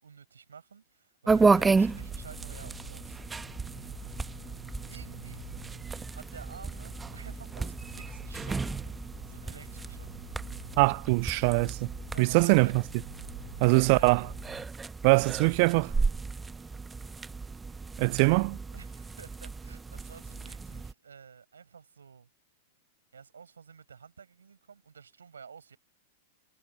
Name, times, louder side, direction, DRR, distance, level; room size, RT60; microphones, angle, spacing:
voice 1, 0.0-3.2 4.7-5.5 6.1-10.1 12.1-12.7 13.5-14.1 18.1-18.4 18.7-22.3 23.1-25.8, right 6 dB, 70° right, 5.6 m, -51 dB
sound 1, 1.3-20.9, right 4 dB, 10° right, 1.2 m, -33 dB
sound 2, 1.4-14.7, left 1 dB, 90° left, 2.2 m, -49 dB
voice 2, 10.8-11.9 12.2-12.7 13.6-14.2 15.0-15.9 18.0-18.5, right 33 dB, 45° right, 0.6 m, -22 dB
figure-of-eight pair, 95°, 0 cm